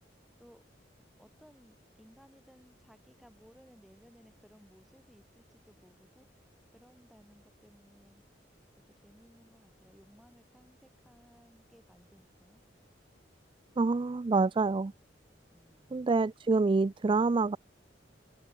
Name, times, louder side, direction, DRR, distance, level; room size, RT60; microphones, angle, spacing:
voice 1, 1.2-6.4 6.7-8.2 9.0-12.6 15.5-16.0, equal, ahead, 5.6 m, -60 dB
voice 2, 13.8-14.9 15.9-17.6, right 3 dB, 30° right, 0.4 m, -27 dB
head